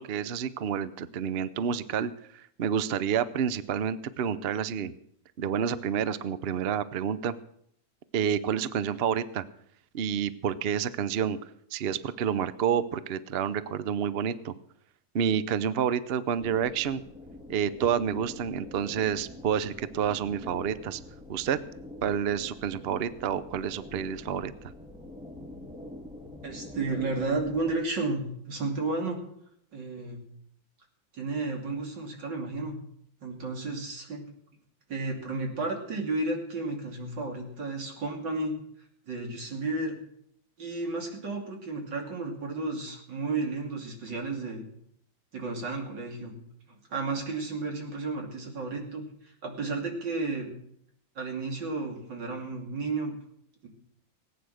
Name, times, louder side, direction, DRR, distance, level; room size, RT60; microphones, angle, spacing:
voice 1, 0.0-4.9 5.4-7.3 8.1-9.4 9.9-11.4 11.7-14.5 15.1-17.0 17.5-21.0 21.3-21.6 22.0-24.7, right 8 dB, 85° right, 15 dB, 0.5 m, -29 dB
sound 1, 16.4-27.8, left 2 dB, 5° right, 1.6 m, -45 dB
voice 2, 26.4-29.2 29.7-30.3 31.1-32.8 33.2-34.3 34.9-38.6 39.1-40.0 40.6-44.7 45.3-46.3 46.7-50.6 51.1-53.1 53.6-53.7, right 3 dB, 65° right, 2 dB, 3.4 m, -32 dB
18.5 x 9.1 x 6.5 m, 0.70 s
omnidirectional pair, 2.1 m